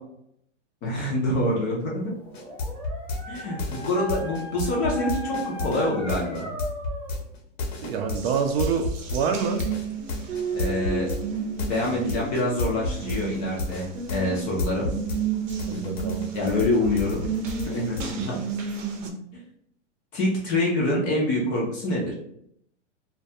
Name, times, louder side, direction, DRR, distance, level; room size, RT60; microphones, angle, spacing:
voice 1, 0.8-2.1 3.3-6.5 10.5-11.1 11.5-14.9 16.3-17.2 17.6-18.4 20.1-22.1, left 1 dB, 20° left, -3 dB, 0.4 m, -26 dB
Dog, 2.1-7.2, left 2 dB, 15° right, 0.9 m, -37 dB
sound 1, 2.3-15.2 15.5-18.1, left 3 dB, 55° left, 0.7 m, -31 dB
voice 2, 7.8-9.7 11.9-12.0 15.7-16.3 18.2-18.3, right 6 dB, 55° right, 5 dB, 0.4 m, -27 dB
Water tap faucet, 8.1-19.1, right 6 dB, 85° right, 0.7 m, -32 dB
2.2 x 2.2 x 2.7 m, 0.71 s
hypercardioid pair, 140°, 37 cm